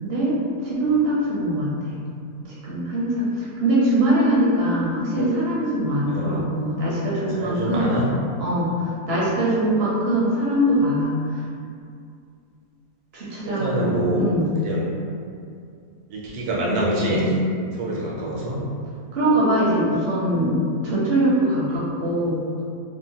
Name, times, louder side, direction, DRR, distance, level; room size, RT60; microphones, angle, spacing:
voice 1, 0.0-2.0 2.6-8.0 8.4-11.4 13.1-13.9 14.1-14.5 19.1-20.6 20.8-22.4, right 1 dB, 60° right, -7 dB, 0.7 m, -22 dB
voice 2, 6.1-6.4 7.3-8.1 13.4-14.2 14.6-14.9 16.1-17.3 17.7-18.6 21.7-21.8, right 1 dB, 85° right, -5 dB, 1.2 m, -25 dB
2.8 x 2.1 x 2.7 m, 2.4 s
omnidirectional pair, 1.6 m